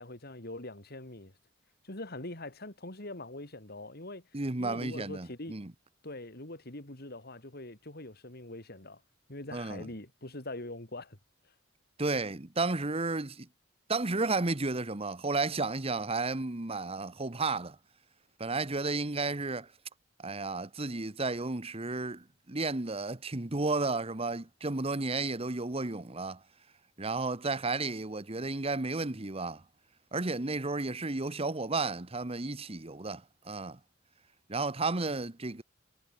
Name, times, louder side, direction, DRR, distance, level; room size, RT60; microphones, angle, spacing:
voice 1, 0.0-1.3 1.8-4.3 4.6-5.6 6.0-9.0 9.3-11.2, left 2 dB, 50° left, 3.5 m, -43 dB
voice 2, 4.3-5.7 9.5-9.9 12.0-13.5 13.9-17.8 18.4-19.7 20.2-26.4 27.0-29.6 30.1-33.8 34.5-35.6, right 3 dB, 30° right, 1.2 m, -33 dB
head